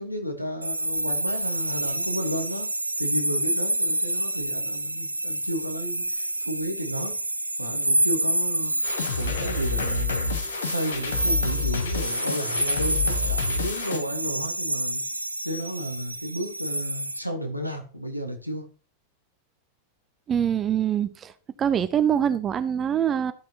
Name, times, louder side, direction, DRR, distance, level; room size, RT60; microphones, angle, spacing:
voice 1, 0.0-2.7 3.0-7.1 7.6-8.9 9.1-15.0 15.4-18.6, equal, 90° left, 1.3 m, -33 dB
sound 1, 0.6-17.2, right 1 dB, 85° right, 0.3 m, -28 dB
sound 2, 8.8-14.0, left 4 dB, 65° left, 1.0 m, -29 dB
voice 2, 20.3-21.3 21.6-23.3, right 9 dB, 25° right, 0.6 m, -24 dB
13.0 x 6.0 x 2.9 m
figure-of-eight pair, 90°, 0 cm